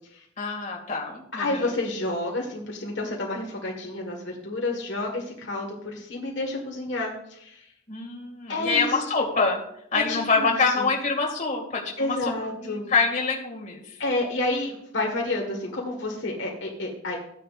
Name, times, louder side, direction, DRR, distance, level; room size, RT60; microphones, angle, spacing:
voice 1, 0.4-1.7 7.9-9.6 9.9-12.2 12.6-13.8, left 4 dB, 40° left, -1 dB, 2.1 m, -25 dB
voice 2, 1.3-7.7 8.5-9.1 9.9-10.9 12.0-12.9 14.0-17.2, left 2 dB, 65° left, 0 dB, 1.6 m, -30 dB
14.0 x 9.9 x 2.5 m, 0.73 s
head